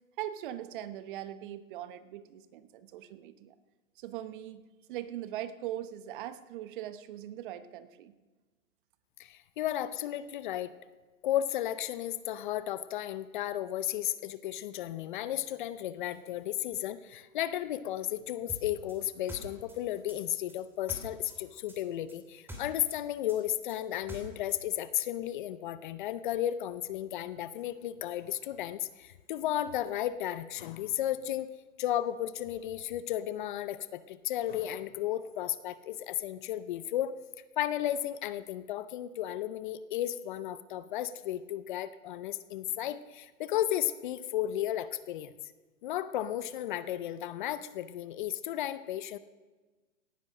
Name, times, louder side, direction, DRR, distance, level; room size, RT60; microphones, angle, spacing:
voice 1, 0.2-3.5 4.0-4.6 4.9-8.1, right 12 dB, 40° right, 13 dB, 0.9 m, -40 dB
voice 2, 9.2-10.7 11.2-31.5 31.8-37.1 37.6-45.3 45.8-49.2, left 12 dB, 40° left, 15 dB, 0.6 m, -34 dB
sound 1, 18.5-21.4 21.7-24.6, right 1 dB, 5° right, 2.6 m, -45 dB
18.0 x 10.5 x 6.3 m, 1.3 s
hypercardioid pair, 135°, 41 cm